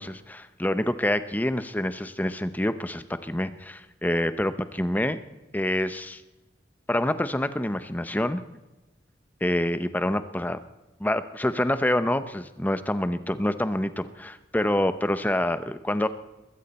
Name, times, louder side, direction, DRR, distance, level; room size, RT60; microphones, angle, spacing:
voice 1, 0.0-5.2 5.5-6.2 6.9-8.4 9.4-10.6 11.0-16.1, left 1 dB, 10° left, 12 dB, 0.7 m, -27 dB
21.5 x 15.5 x 4.2 m, 1.1 s
head